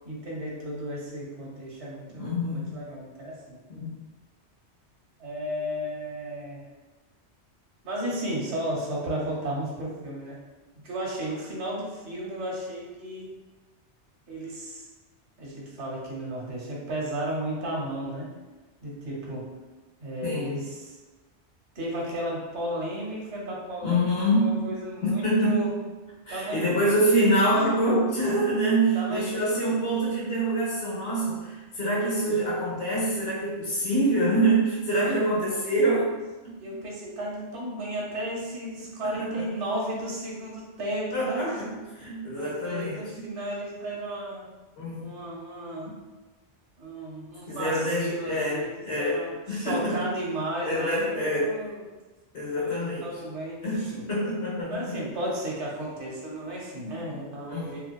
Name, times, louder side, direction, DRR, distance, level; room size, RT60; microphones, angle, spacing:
voice 1, 0.0-3.6 5.2-6.6 7.8-10.4 10.8-13.3 14.3-14.9 15.4-18.3 18.8-19.4 20.0-21.0 21.8-25.7 26.3-26.7 28.9-29.7 32.3-32.4 35.0-35.4 36.6-41.6 42.3-44.4 45.0-45.9 46.8-51.8 52.5-54.1 54.7-57.8, right 1 dB, 75° right, -3 dB, 1.0 m, -34 dB
voice 2, 2.2-2.8 3.7-3.9 20.2-20.7 23.8-24.6 25.0-25.7 26.3-36.1 39.1-39.5 41.1-43.3 44.8-45.1 47.5-50.1 50.6-51.6 52.3-53.2 53.6-55.0 57.5-57.8, right 1 dB, 65° left, -6 dB, 1.0 m, -26 dB
2.5 x 2.2 x 2.2 m, 1.2 s
omnidirectional pair, 1.2 m